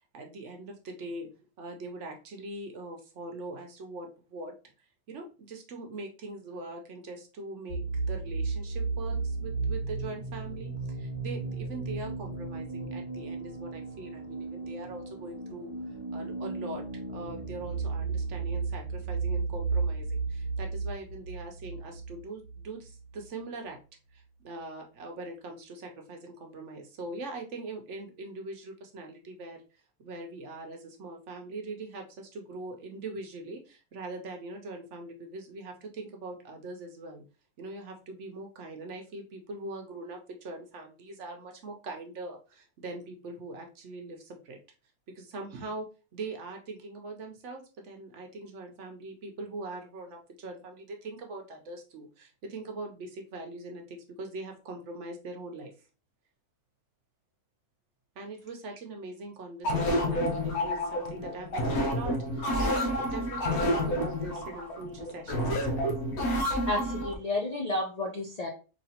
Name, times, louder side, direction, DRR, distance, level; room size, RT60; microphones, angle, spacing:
voice 1, 0.1-1.3 1.6-4.5 5.1-7.8 8.1-23.8 24.1-29.6 30.0-37.2 37.6-44.6 45.1-45.9 46.1-55.9 58.2-65.8, right 2 dB, 60° right, 3 dB, 0.9 m, -42 dB
sound 1, 7.7-23.2, right 4 dB, 85° left, 1.5 m, -34 dB
sound 2, 59.6-67.1, left 1 dB, 70° left, 1.4 m, -29 dB
voice 2, 66.7-68.5, left 2 dB, 50° left, 0 dB, 0.4 m, -31 dB
4.1 x 2.8 x 2.7 m, 0.33 s
omnidirectional pair, 1.5 m